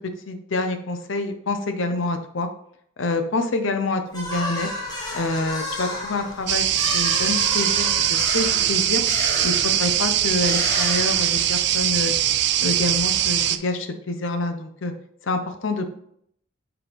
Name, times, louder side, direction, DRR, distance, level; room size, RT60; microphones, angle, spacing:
voice 1, 0.3-2.5 3.0-4.7 5.1-6.6 6.9-9.0 9.4-12.1 12.6-14.9 15.2-15.9, left 2 dB, 75° left, 6 dB, 0.7 m, -27 dB
sound 1, 4.1-11.8, left 1 dB, 20° left, 1.4 m, -32 dB
sound 2, 6.5-13.6, right 11 dB, 60° right, 0.4 m, -21 dB
6.1 x 4.5 x 3.4 m, 0.68 s
head